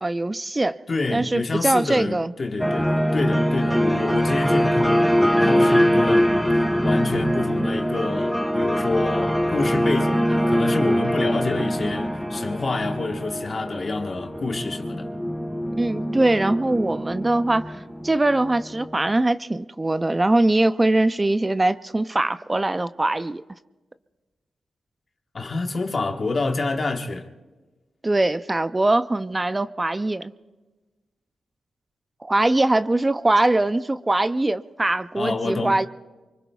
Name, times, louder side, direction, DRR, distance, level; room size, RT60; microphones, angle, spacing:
voice 1, 0.0-0.8 1.1-2.3 15.8-23.4 28.0-30.3 32.2-35.9, right 2 dB, 25° right, 0.5 m, -22 dB
voice 2, 0.9-15.1 25.3-27.3 35.1-35.8, left 3 dB, 50° left, 1.4 m, -28 dB
sound 1, 2.6-18.9, equal, ahead, 1.1 m, -23 dB
24.5 x 24.0 x 2.4 m
cardioid pair, 60°, 0 cm